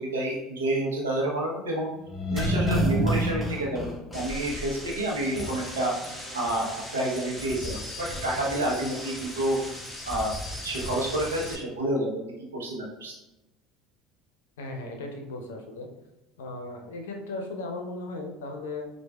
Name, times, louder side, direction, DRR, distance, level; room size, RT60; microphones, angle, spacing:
voice 1, 0.0-1.9 2.3-9.6 10.1-10.3 10.6-12.2 12.5-13.1, right 1 dB, 90° right, -2 dB, 0.8 m, -29 dB
sound 1, 2.1-4.9 5.2-5.3, right 1 dB, 15° left, 0.8 m, -27 dB
sound 2, 4.1-11.6, left 1 dB, ahead, 1.1 m, -38 dB
voice 2, 14.6-15.9 16.4-18.9, left 2 dB, 80° left, 3 dB, 0.5 m, -36 dB
4.5 x 2.4 x 2.3 m, 0.99 s
hypercardioid pair, 75°, 0 cm